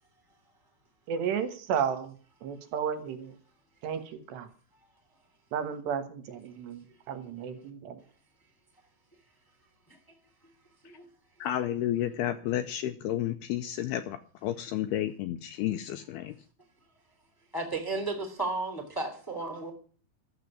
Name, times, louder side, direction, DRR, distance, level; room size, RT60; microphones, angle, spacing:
voice 1, 1.1-2.1 2.4-3.3 3.8-4.5 5.5-8.0, right 7 dB, 70° right, 10 dB, 3.3 m, -33 dB
voice 2, 11.4-16.4, left 12 dB, 80° left, 9 dB, 2.4 m, -31 dB
voice 3, 17.5-19.7, right 2 dB, 10° left, 4 dB, 1.4 m, -33 dB
13.0 x 7.6 x 9.8 m, 0.42 s
omnidirectional pair, 5.3 m